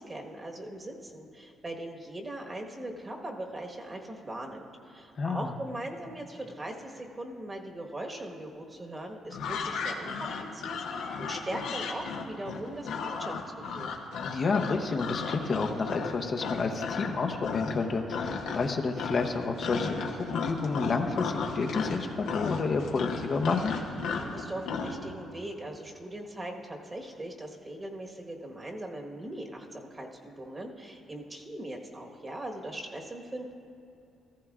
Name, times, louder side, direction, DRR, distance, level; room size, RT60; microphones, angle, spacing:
voice 1, 0.0-13.9 24.1-33.5, right 1 dB, 25° right, 1 dB, 1.3 m, -40 dB
voice 2, 5.2-5.5 14.2-23.7, left 4 dB, 45° left, 4 dB, 0.7 m, -30 dB
sound 1, 9.3-17.1 17.4-17.8 18.1-18.7 19.0-25.0, left 5 dB, 85° left, 1.0 m, -34 dB
14.5 x 14.5 x 2.4 m, 2.6 s
cardioid pair, 90°, 0 cm